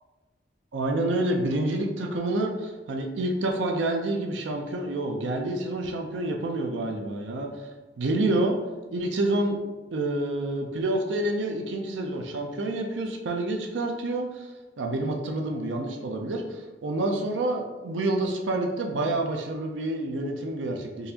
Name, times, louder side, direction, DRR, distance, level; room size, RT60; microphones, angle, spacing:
voice 1, 0.7-7.7 8.0-8.6 8.9-9.6 9.9-14.5 14.8-21.1, right 2 dB, 80° right, 2 dB, 0.5 m, -28 dB
3.9 x 2.5 x 2.8 m, 1.2 s
head